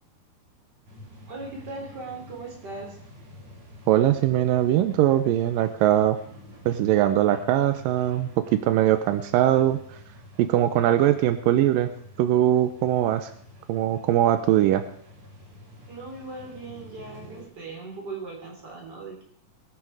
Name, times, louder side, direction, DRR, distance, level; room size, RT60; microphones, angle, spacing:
sound 1, 0.9-17.5, left 1 dB, 50° right, 4.4 m, -48 dB
voice 1, 1.3-3.0 15.9-19.2, right 3 dB, 30° right, 0 dB, 4.0 m, -38 dB
voice 2, 3.9-6.2 6.7-9.8 10.4-11.9 12.2-13.3 13.7-14.8, right 12 dB, 85° right, 11 dB, 2.4 m, -21 dB
21.0 x 9.3 x 4.8 m, 0.62 s
omnidirectional pair, 3.9 m